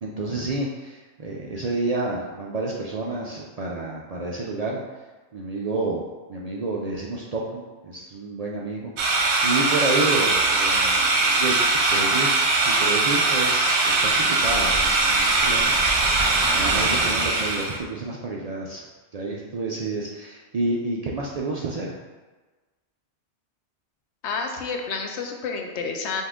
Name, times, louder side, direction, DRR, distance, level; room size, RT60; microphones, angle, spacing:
voice 1, 0.0-4.8 5.3-6.0 6.3-16.1 16.5-18.8 19.1-21.9, right 2 dB, 55° right, -3 dB, 0.4 m, -30 dB
sound 1, 9.0-17.8, right 3 dB, 85° right, 1.0 m, -21 dB
voice 2, 24.2-26.2, left 4 dB, 80° left, 3 dB, 0.9 m, -29 dB
5.3 x 2.5 x 3.6 m, 1.3 s
omnidirectional pair, 1.1 m